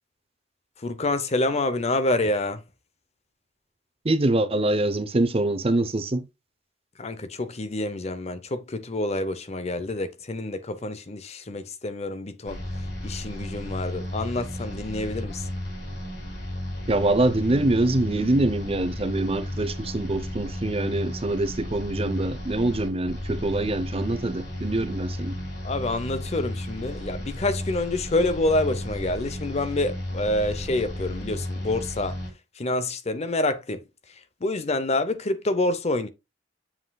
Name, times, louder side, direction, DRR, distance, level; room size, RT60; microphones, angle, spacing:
voice 1, 0.8-2.6 7.0-12.6 13.0-15.5 25.6-32.2 32.6-33.8 34.4-36.1, left 2 dB, 35° left, 0.7 m, -27 dB
voice 2, 4.0-6.3 16.9-25.4, right 2 dB, 30° right, 0.7 m, -24 dB
sound 1, 12.4-32.3, left 1 dB, 70° left, 4.3 m, -34 dB
7.3 x 6.1 x 2.3 m
head